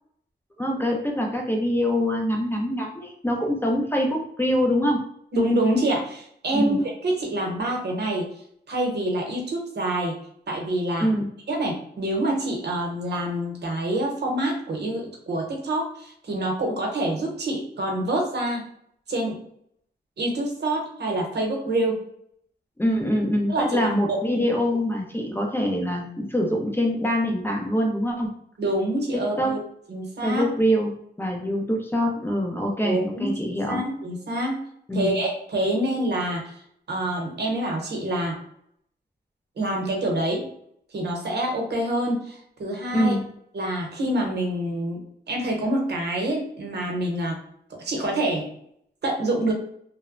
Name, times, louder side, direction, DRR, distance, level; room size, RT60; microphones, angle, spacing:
voice 1, 0.6-5.0 6.5-6.8 11.0-11.3 22.8-28.3 29.1-29.6 30.2-30.9 31.2-33.9 34.9-35.1 42.9-43.2, equal, 10° left, 0 dB, 0.5 m, -24 dB
voice 2, 5.3-6.7 7.0-8.3 8.7-10.2 10.5-11.1 11.5-18.6 19.1-19.4 20.2-22.0 23.5-24.2 28.6-29.6 29.9-30.5 32.8-33.3 33.7-34.6 34.9-36.4 36.9-38.4 39.6-40.5 40.9-43.2 43.5-45.0 45.3-47.4 47.8-48.4 49.0-49.5, right 1 dB, 70° right, 0 dB, 0.8 m, -26 dB
2.9 x 2.1 x 2.4 m, 0.70 s
wide cardioid pair, 120°, 18 cm